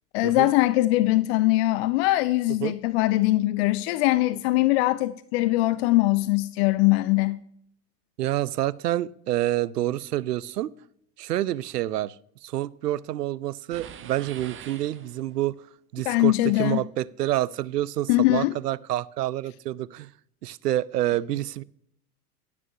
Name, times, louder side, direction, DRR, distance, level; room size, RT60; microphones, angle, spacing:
voice 1, 0.1-7.4 16.1-16.8 18.1-18.5, left 18 dB, 45° left, 0.4 m, -22 dB
voice 2, 8.2-10.7 11.2-12.2 12.4-15.5 15.9-16.3 16.6-20.1 20.4-21.6, right 14 dB, 75° right, 0.5 m, -28 dB
sound 1, 13.7-15.5, right 8 dB, 25° right, 0.9 m, -44 dB
11.0 x 9.5 x 2.6 m
figure-of-eight pair, 80°, 47 cm